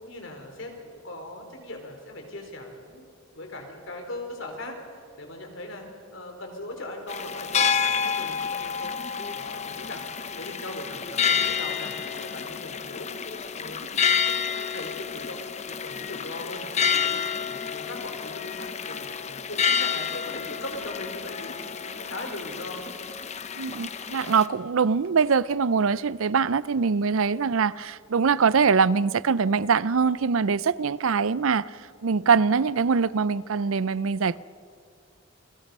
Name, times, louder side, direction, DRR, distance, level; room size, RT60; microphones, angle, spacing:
voice 1, 0.0-3.1 3.3-4.8 5.2-5.9 6.1-8.9 9.3-10.0 10.4-13.1 13.5-17.2 17.5-22.8, left 1 dB, 65° left, 4.0 m, -39 dB
sound 1, 7.1-24.5, left 6 dB, 30° left, 0.8 m, -29 dB
voice 2, 23.6-34.4, right 5 dB, 75° right, 0.5 m, -23 dB
29.0 x 21.5 x 5.5 m
head